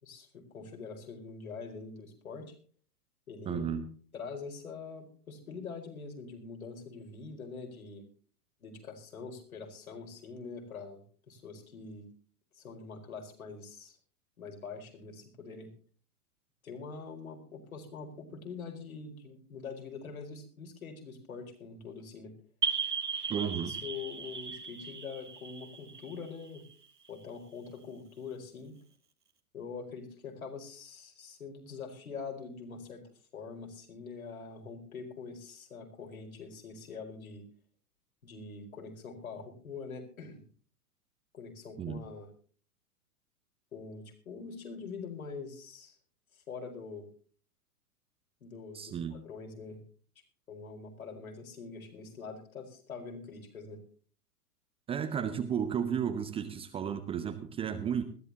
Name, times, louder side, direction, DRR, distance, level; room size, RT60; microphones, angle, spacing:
voice 1, 0.0-2.5 3.3-3.6 4.1-8.1 8.6-12.1 12.5-13.9 14.4-15.7 16.6-22.3 23.3-26.6 27.1-28.8 29.5-33.0 33.3-37.4 38.2-40.4 41.3-42.3 43.7-46.0 46.3-47.1 48.4-49.8 50.5-53.8, left 5 dB, 65° left, 2 dB, 4.9 m, -44 dB
voice 2, 3.5-3.8 23.3-23.7 41.8-42.0 48.7-49.2 54.9-58.0, right 8 dB, 10° right, 9 dB, 0.9 m, -33 dB
sound 1, 22.6-27.1, right 5 dB, 85° right, 1.7 m, -36 dB
20.5 x 14.5 x 2.9 m, 0.43 s
figure-of-eight pair, 105°, 45 cm